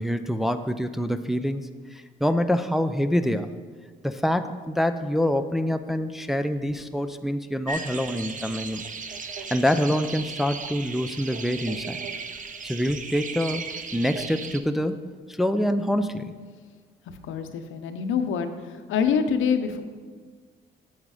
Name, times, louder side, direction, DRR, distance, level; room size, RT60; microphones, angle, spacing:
voice 1, 0.0-3.5 4.0-8.9 9.5-12.0 12.6-13.6 13.9-15.0 15.3-16.3, equal, ahead, 8 dB, 0.4 m, -26 dB
sound 1, 7.7-14.6, right 5 dB, 40° right, 0.8 m, -36 dB
voice 2, 17.2-19.8, left 6 dB, 85° left, 7 dB, 0.9 m, -26 dB
9.0 x 7.4 x 4.9 m, 1.5 s
cardioid pair, 90°, 20 cm